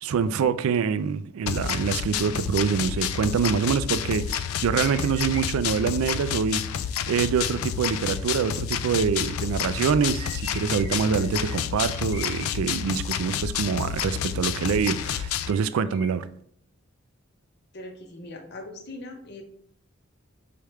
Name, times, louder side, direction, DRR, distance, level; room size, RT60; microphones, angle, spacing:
voice 1, 0.0-6.6 7.1-16.3, right 6 dB, 90° right, 0.3 m, -25 dB
sound 1, 1.5-15.5, left 9 dB, 80° left, 0.3 m, -29 dB
sound 2, 2.9-3.8 4.5-6.0 7.8-9.2 10.0-12.6 14.0-14.6 15.5-16.1, left 1 dB, 25° left, 1.1 m, -44 dB
voice 2, 17.7-19.4, left 2 dB, 55° left, 0.8 m, -40 dB
4.7 x 3.4 x 3.1 m
head